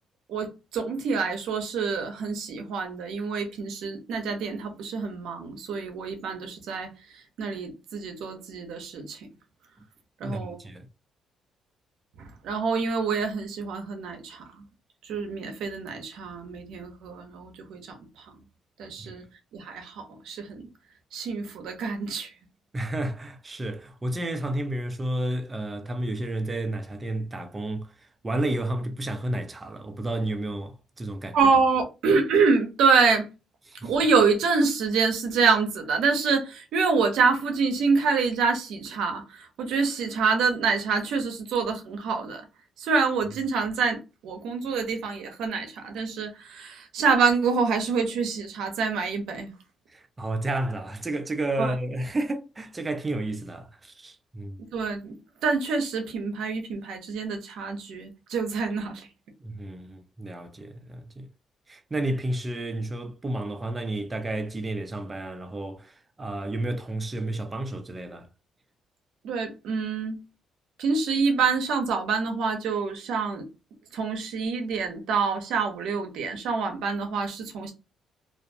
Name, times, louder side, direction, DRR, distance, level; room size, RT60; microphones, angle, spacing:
voice 1, 0.3-9.3 10.2-10.6 12.2-14.6 15.0-18.3 18.8-19.2 19.5-20.7 21.1-22.3 31.3-33.3 33.8-42.4 42.8-49.5 51.6-51.7 54.6-55.2 55.4-59.1 69.2-70.2 70.8-73.5 73.9-77.7, right 5 dB, 85° right, 0.6 m, -26 dB
voice 2, 10.2-10.9 19.0-19.1 22.7-31.4 33.7-33.9 49.9-54.6 59.4-61.3 61.7-68.3, right 1 dB, 25° right, 0.4 m, -31 dB
2.4 x 2.2 x 2.6 m
cardioid pair, 90°, 0 cm